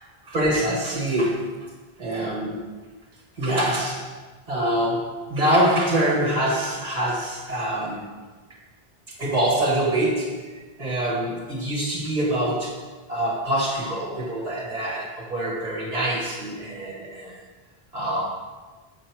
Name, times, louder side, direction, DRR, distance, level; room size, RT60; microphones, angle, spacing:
voice 1, 0.2-1.7 2.0-2.6 3.4-4.2 4.5-8.1 9.2-17.4 17.9-18.2, right 1 dB, 40° right, -4 dB, 1.3 m, -25 dB
7.5 x 5.3 x 4.5 m, 1.3 s
omnidirectional pair, 1.0 m